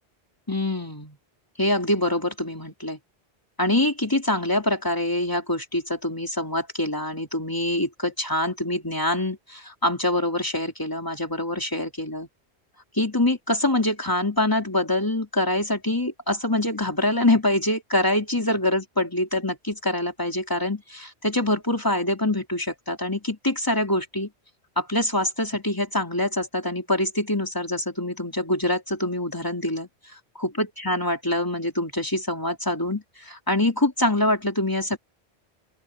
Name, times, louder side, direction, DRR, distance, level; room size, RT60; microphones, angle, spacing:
voice 1, 0.5-1.2 1.6-3.0 3.6-12.3 12.9-24.3 24.8-29.9 30.4-35.0, left 1 dB, 20° left, 3.1 m, -25 dB
open air
omnidirectional pair, 1.1 m